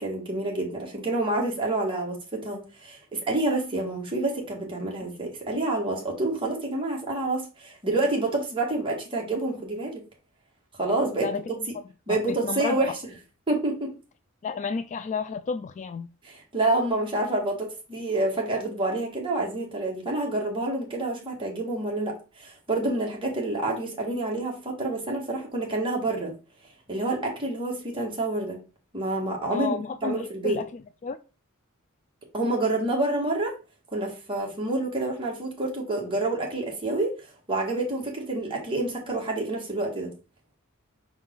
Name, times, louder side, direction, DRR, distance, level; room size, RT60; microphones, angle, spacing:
voice 1, 0.0-10.0 10.8-11.4 12.1-13.1 13.5-13.9 16.2-26.3 26.9-28.6 28.9-30.6 32.3-33.5 33.9-37.1 37.5-40.1, right 2 dB, 25° right, 2.1 m, -28 dB
voice 2, 12.1-12.8 14.4-16.1 29.5-30.7 31.0-31.2, left 5 dB, 35° left, 0.3 m, -31 dB
5.6 x 4.7 x 3.9 m
head